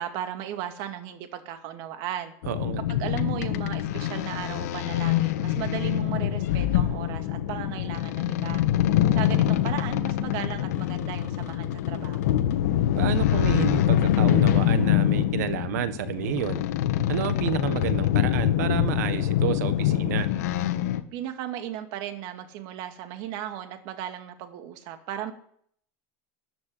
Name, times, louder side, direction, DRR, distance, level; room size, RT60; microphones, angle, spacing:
voice 1, 0.0-2.3 2.9-8.6 9.1-12.4 21.1-25.3, right 11 dB, 55° right, 7 dB, 2.3 m, -36 dB
sound 1, 2.4-21.0, left 12 dB, 85° left, 1.3 m, -25 dB
voice 2, 2.5-2.8 13.0-16.6 17.1-20.3, right 11 dB, 85° right, 12 dB, 1.5 m, -30 dB
14.0 x 9.5 x 10.0 m, 0.66 s
supercardioid pair, 135°, 9 cm